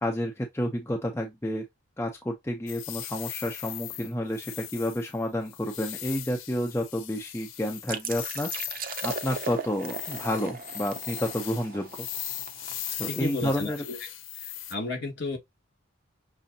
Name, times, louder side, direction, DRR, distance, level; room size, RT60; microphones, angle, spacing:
voice 1, 0.0-1.6 2.0-8.5 9.0-12.1 13.0-13.8, left 1 dB, 15° left, 0.6 m, -30 dB
sound 1, 2.7-14.7, left 12 dB, 85° left, 0.6 m, -39 dB
sound 2, 7.9-13.4, right 5 dB, 45° right, 0.6 m, -38 dB
voice 2, 13.0-14.0 14.4-15.4, left 2 dB, 55° left, 2.3 m, -33 dB
6.2 x 2.7 x 2.7 m
head